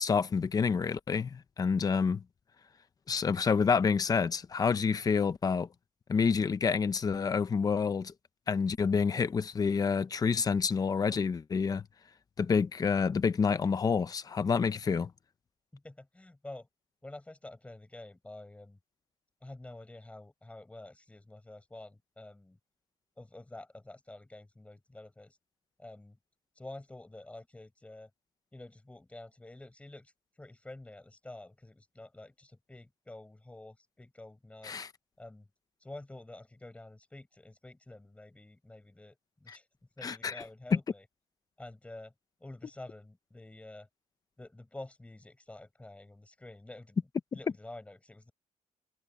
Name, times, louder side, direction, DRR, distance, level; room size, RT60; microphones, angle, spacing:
voice 1, 0.0-2.2 3.1-5.7 6.1-8.1 8.5-11.8 12.4-15.1 34.6-34.9 39.5-39.6 40.0-40.3 40.7-40.8, left 5 dB, 30° left, 0.8 m, -28 dB
voice 2, 15.7-16.7 17.0-18.8 19.4-22.6 23.2-25.4 25.8-26.2 26.6-28.1 28.5-30.1 30.4-34.8 35.2-35.5 35.8-39.7 40.0-41.0 41.6-42.1 42.4-43.9 44.4-47.0 47.3-48.3, left 2 dB, 10° left, 5.9 m, -49 dB
cardioid pair, 160°, 13 cm